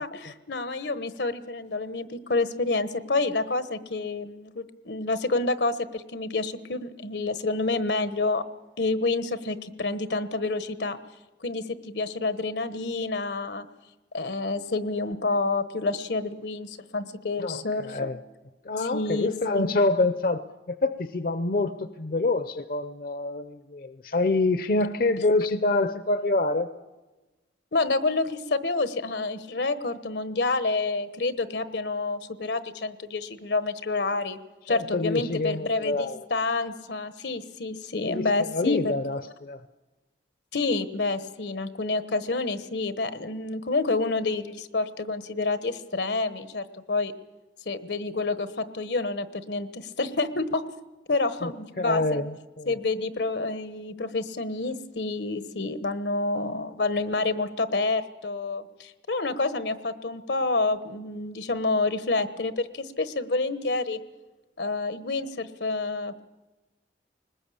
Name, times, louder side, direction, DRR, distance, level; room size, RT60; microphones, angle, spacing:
voice 1, 0.0-8.4 8.8-11.0 11.4-13.7 14.1-18.1 18.8-19.7 27.7-34.4 34.7-38.9 40.5-47.1 47.6-50.6 51.1-52.2 52.7-64.0 64.6-66.2, left 3 dB, 80° left, 12 dB, 1.2 m, -28 dB
voice 2, 17.4-18.2 18.7-26.7 34.7-36.2 38.1-39.6 51.4-51.5 51.8-52.7, left 2 dB, 55° left, 11 dB, 0.6 m, -26 dB
21.0 x 20.0 x 8.5 m, 1.1 s
head